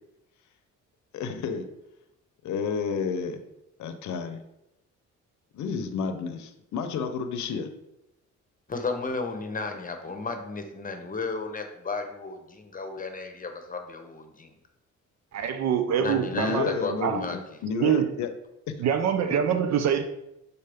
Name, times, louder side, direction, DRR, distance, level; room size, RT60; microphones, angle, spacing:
voice 1, 1.1-1.7 2.4-3.4 3.8-4.4 5.5-7.7 16.3-18.3 18.7-18.8, left 5 dB, 75° left, 8 dB, 0.7 m, -30 dB
voice 2, 8.7-14.5 16.0-17.4, left 4 dB, 25° left, 5 dB, 0.9 m, -33 dB
voice 3, 15.3-16.6 17.0-17.2 17.8-18.1 18.8-20.0, right 8 dB, 60° right, 7 dB, 0.6 m, -24 dB
6.5 x 4.1 x 3.5 m, 0.86 s
cardioid pair, 90°, 30 cm